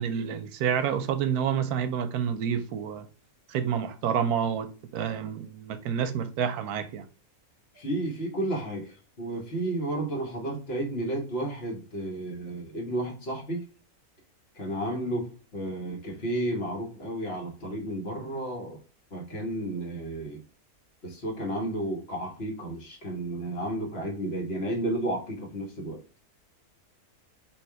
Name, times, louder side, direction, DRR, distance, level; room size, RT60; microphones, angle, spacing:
voice 1, 0.0-3.1 3.5-7.0, right 8 dB, 90° right, 1.1 m, -29 dB
voice 2, 7.7-13.6 14.5-18.8 19.1-20.4 21.0-26.0, right 1 dB, 45° left, 1.3 m, -32 dB
3.5 x 3.0 x 4.5 m
omnidirectional pair, 1.6 m